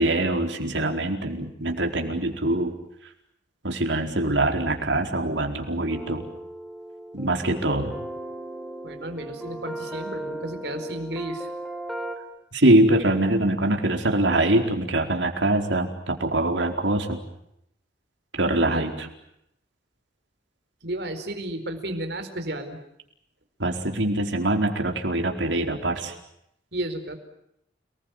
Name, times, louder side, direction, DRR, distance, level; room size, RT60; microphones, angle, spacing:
voice 1, 0.0-2.7 3.6-6.2 7.1-7.9 12.5-17.2 18.3-19.1 23.6-26.1, right 1 dB, 90° right, 4 dB, 4.5 m, -23 dB
sound 1, 5.9-12.2, right 1 dB, ahead, 3.6 m, -36 dB
voice 2, 8.8-11.5 18.7-19.1 20.8-22.8 26.7-27.2, right 1 dB, 65° right, 7 dB, 4.6 m, -33 dB
30.0 x 20.5 x 9.3 m, 0.78 s
head